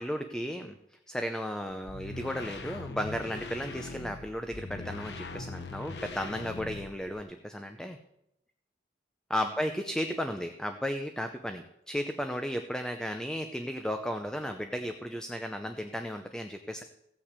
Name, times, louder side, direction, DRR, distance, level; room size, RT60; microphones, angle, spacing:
voice 1, 0.0-8.0 9.3-16.8, equal, 5° left, 6 dB, 0.6 m, -34 dB
sound 1, 1.8-7.2, left 3 dB, 75° left, 0.9 m, -41 dB
16.0 x 6.0 x 8.1 m, 0.84 s
head